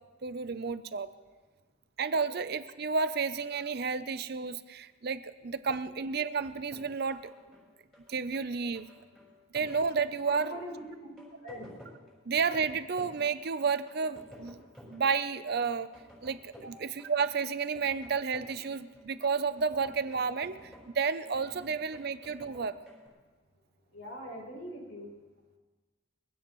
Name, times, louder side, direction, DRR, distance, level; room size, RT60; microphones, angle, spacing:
voice 1, 0.2-1.1 2.0-7.2 8.1-8.9 9.5-10.5 12.3-14.6 14.9-15.9 16.2-20.7 20.9-22.8, right 5 dB, 50° right, 13 dB, 0.6 m, -31 dB
sound 1, 6.3-23.1, equal, 5° left, 4.7 m, -53 dB
voice 2, 10.2-11.1 11.4-11.7 16.6-16.7 23.9-25.1, equal, 80° left, -3 dB, 6.5 m, -42 dB
23.0 x 16.0 x 3.1 m, 1.3 s
head